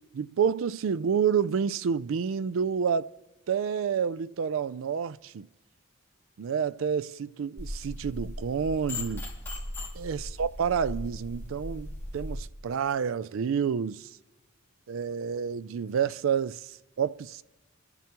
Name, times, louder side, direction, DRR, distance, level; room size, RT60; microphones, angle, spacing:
voice 1, 0.1-3.1 3.5-5.5 6.4-9.3 9.9-14.1 14.9-17.4, right 7 dB, 75° right, 0.4 m, -29 dB
sound 1, 7.6-12.4, left 1 dB, 10° left, 2.2 m, -38 dB
25.0 x 10.5 x 2.9 m
head